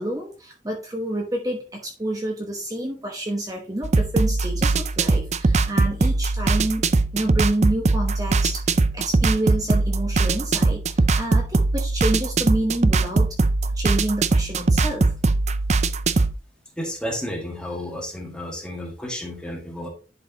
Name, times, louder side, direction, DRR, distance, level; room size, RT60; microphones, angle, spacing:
voice 1, 0.0-13.4 13.7-15.1, right 1 dB, 20° right, 1 dB, 1.1 m, -28 dB
sound 1, 3.8-16.4, right 3 dB, 40° right, 0.5 m, -21 dB
voice 2, 16.8-19.9, equal, 5° left, 1 dB, 1.9 m, -32 dB
11.0 x 4.9 x 2.9 m, 0.35 s
head